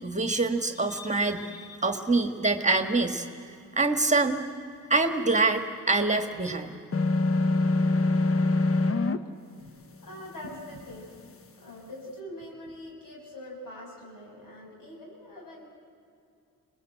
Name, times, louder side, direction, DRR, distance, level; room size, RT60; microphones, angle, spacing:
voice 1, 0.0-3.3 3.8-4.4 4.9-6.7, right 3 dB, 20° right, 6 dB, 1.8 m, -25 dB
sound 1, 6.9-9.2, left 2 dB, 40° left, 1.2 m, -24 dB
voice 2, 9.6-11.1 11.6-15.6, left 1 dB, 70° left, -1 dB, 7.1 m, -43 dB
23.0 x 20.5 x 8.0 m, 2.5 s
supercardioid pair, 55°, 34 cm